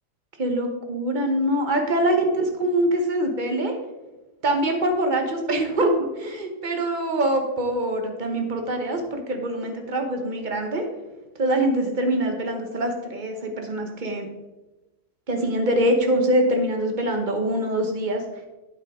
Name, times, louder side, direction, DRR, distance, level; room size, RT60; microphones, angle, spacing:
voice 1, 0.4-3.7 4.4-10.9 11.4-14.3 15.3-18.2, right 1 dB, 35° right, 4 dB, 1.1 m, -24 dB
9.0 x 7.8 x 3.6 m, 1.1 s
omnidirectional pair, 1.6 m